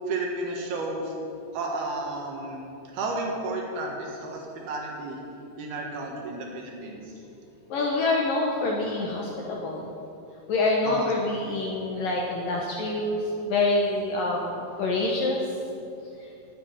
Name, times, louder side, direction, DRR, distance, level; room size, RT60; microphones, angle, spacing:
voice 1, 0.1-1.1 1.5-2.6 2.9-5.2 5.6-7.1 10.8-11.1, right 2 dB, 65° right, 0 dB, 3.3 m, -32 dB
voice 2, 7.7-9.9 10.5-15.4, left 2 dB, 70° left, -1 dB, 2.2 m, -26 dB
9.9 x 9.7 x 9.8 m, 2.7 s
omnidirectional pair, 5.2 m